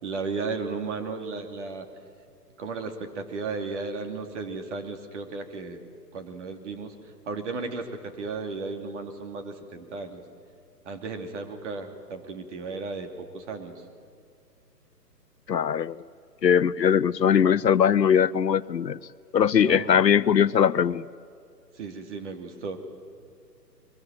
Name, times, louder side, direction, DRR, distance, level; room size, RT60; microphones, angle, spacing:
voice 1, 0.0-1.9 2.6-5.8 6.1-6.9 7.3-10.2 10.8-13.8 19.6-20.0 21.8-22.8, right 4 dB, 45° right, 5 dB, 2.8 m, -34 dB
voice 2, 15.5-16.0 16.4-19.0 19.3-21.0, left 8 dB, 85° left, 17 dB, 0.7 m, -21 dB
23.5 x 21.0 x 7.6 m, 2.4 s
figure-of-eight pair, 130°, 49 cm